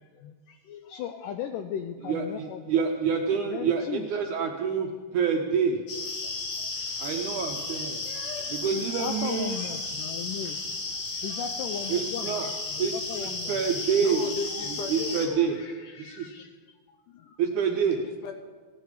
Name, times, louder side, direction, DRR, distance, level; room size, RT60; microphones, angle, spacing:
voice 1, 0.0-2.8 3.5-4.1 6.2-6.8 7.5-7.6 8.0-10.6 11.1-13.9 14.5-14.7 15.5-16.5 16.9-17.4, left 8 dB, 90° left, 7 dB, 1.9 m, -38 dB
voice 2, 2.1-5.8 7.0-8.0 8.5-9.6 11.9-12.5 12.8-13.0 13.2-14.2 14.9-15.6 16.0-16.3 17.4-18.0, right 6 dB, 75° right, 3 dB, 1.9 m, -27 dB
sound 1, 5.9-15.3, left 3 dB, 55° left, 2.6 m, -34 dB
voice 3, 14.0-15.5 18.0-18.3, left 5 dB, 70° left, 5 dB, 2.1 m, -36 dB
16.0 x 10.0 x 4.9 m, 1.4 s
omnidirectional pair, 4.4 m